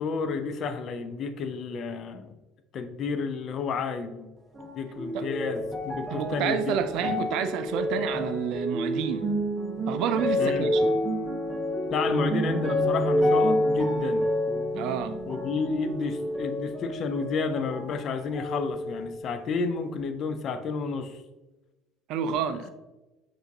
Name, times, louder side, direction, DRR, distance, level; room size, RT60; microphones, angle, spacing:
voice 1, 0.0-2.3 2.7-4.3 4.8-6.7 7.1-7.2 10.4-10.7 11.9-14.3 15.3-21.2 22.5-22.7, left 5 dB, 45° left, 0.4 m, -31 dB
sound 1, 4.5-18.0 18.3-19.3 20.0-20.1, left 1 dB, 10° right, 0.9 m, -28 dB
voice 2, 6.1-9.3 9.9-10.8 14.7-15.2 22.1-22.7, right 8 dB, 55° right, 0.3 m, -29 dB
5.6 x 2.5 x 2.7 m
figure-of-eight pair, 60°, 0 cm